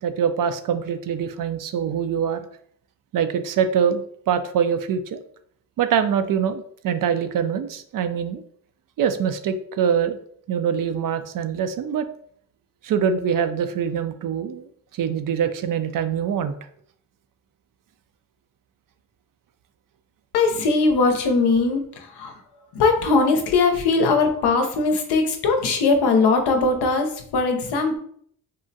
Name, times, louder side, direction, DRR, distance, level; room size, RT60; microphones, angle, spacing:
voice 1, 0.0-2.4 3.1-5.2 5.8-8.4 9.0-10.2 10.5-12.1 12.8-14.7 14.9-16.5, right 7 dB, 55° right, 9 dB, 0.4 m, -24 dB
voice 2, 20.3-22.4 22.7-28.0, left 3 dB, 75° left, 4 dB, 0.7 m, -20 dB
3.6 x 2.1 x 2.6 m, 0.64 s
supercardioid pair, 55°, 41 cm